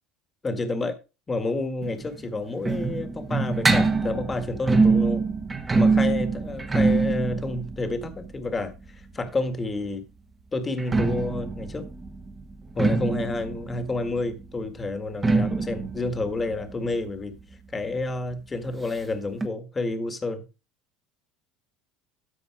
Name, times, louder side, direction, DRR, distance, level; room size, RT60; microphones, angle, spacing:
voice 1, 0.4-1.0 1.3-5.2 5.7-8.7 9.1-10.0 10.5-11.9 12.7-17.4 17.7-20.5, left 2 dB, 20° left, 1.8 m, -29 dB
sound 1, 1.8-9.5 10.6-18.0 18.3-18.4 18.6-18.7 19.4-19.5, right 4 dB, 20° right, 1.4 m, -25 dB
13.0 x 4.9 x 4.9 m
supercardioid pair, 120°, 0 cm